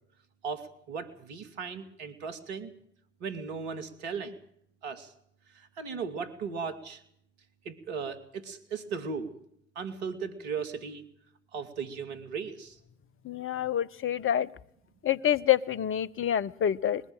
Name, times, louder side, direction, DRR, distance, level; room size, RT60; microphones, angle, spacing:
voice 1, 0.4-2.7 3.2-4.4 4.8-5.1 5.5-7.0 7.6-9.3 9.8-11.0 11.5-12.8, right 5 dB, 70° right, 9 dB, 2.4 m, -37 dB
voice 2, 13.2-14.5 15.0-17.0, left 10 dB, 35° left, 16 dB, 0.9 m, -27 dB
21.0 x 14.5 x 9.0 m, 0.70 s
figure-of-eight pair, 55°, 34 cm